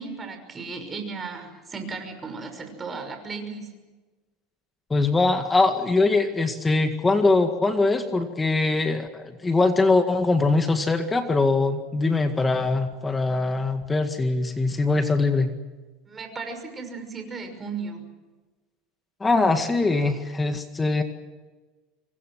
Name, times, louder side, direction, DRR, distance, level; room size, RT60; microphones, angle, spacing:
voice 1, 0.0-3.7 16.1-18.0, right 4 dB, 20° right, 6 dB, 6.0 m, -35 dB
voice 2, 4.9-15.5 19.2-21.0, left 3 dB, 15° left, 7 dB, 2.0 m, -22 dB
26.5 x 23.0 x 6.4 m, 1.2 s
supercardioid pair, 125°, 0 cm